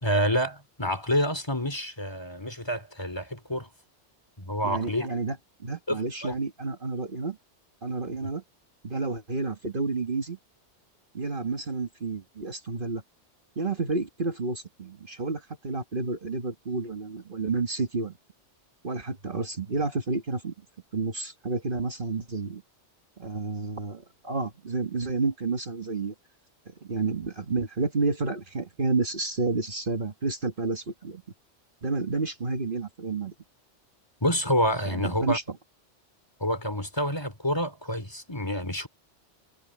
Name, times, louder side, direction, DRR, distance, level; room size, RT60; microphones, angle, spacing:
voice 1, 0.0-3.7 4.4-5.1 5.9-6.3 8.2-8.3 34.2-35.4 36.4-38.9, equal, 20° left, 2.8 m, -28 dB
voice 2, 4.6-5.4 5.6-7.4 7.8-8.4 8.8-10.4 11.1-13.0 13.6-18.1 18.8-20.5 20.9-22.6 23.2-26.1 26.7-31.2 31.8-33.3 34.9-35.4, right 3 dB, 45° right, 1.9 m, -30 dB
omnidirectional pair, 1.2 m